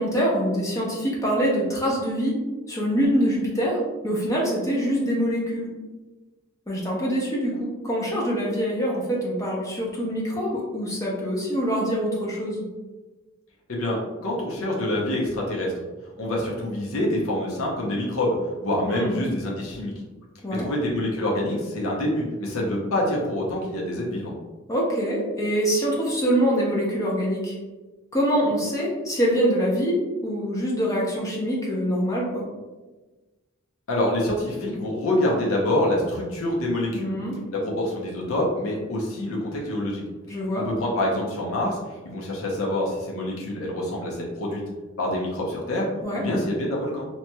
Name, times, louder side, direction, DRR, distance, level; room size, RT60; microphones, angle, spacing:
voice 1, 0.0-2.3 2.7-5.7 6.7-12.6 18.9-19.1 20.4-20.7 24.7-27.5 28.1-32.4 36.9-37.4 40.3-40.7 46.0-46.2, equal, 15° left, -4 dB, 0.6 m, -24 dB
voice 2, 13.7-15.7 16.2-18.4 18.6-19.9 20.6-24.3 33.9-37.1 37.5-40.0 40.5-41.8 42.0-44.6 45.0-45.9 46.1-47.1, left 1 dB, 75° left, -3 dB, 0.7 m, -26 dB
2.9 x 2.8 x 2.2 m, 1.2 s
head